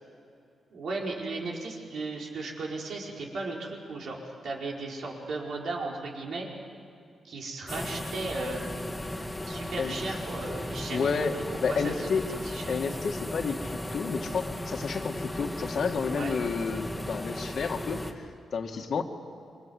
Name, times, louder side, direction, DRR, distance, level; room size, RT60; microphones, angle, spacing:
voice 1, 0.7-4.2 4.4-6.5 7.2-8.7 9.5-11.1 11.7-12.8 16.1-16.4, right 3 dB, 70° right, -1 dB, 4.9 m, -36 dB
sound 1, 7.7-18.1, left 1 dB, 10° left, 2.2 m, -36 dB
voice 2, 9.8-10.2 10.9-11.3 11.6-12.2 12.7-19.0, left 5 dB, 65° left, 4 dB, 2.1 m, -31 dB
28.0 x 24.5 x 8.1 m, 2.5 s
cardioid pair, 110°, 0 cm